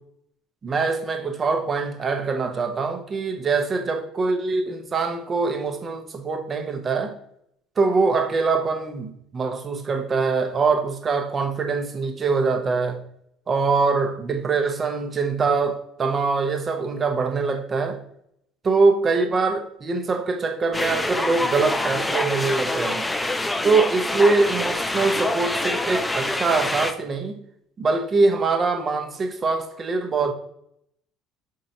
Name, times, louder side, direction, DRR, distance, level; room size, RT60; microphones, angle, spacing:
voice 1, 0.6-7.1 7.8-13.0 13.5-18.0 18.6-23.1 23.6-27.4 27.8-30.3, right 4 dB, 35° right, 0.7 m, -23 dB
sound 1, 20.7-26.9, left 2 dB, 10° left, 0.4 m, -26 dB
5.1 x 3.7 x 2.7 m
figure-of-eight pair, 60°, 0 cm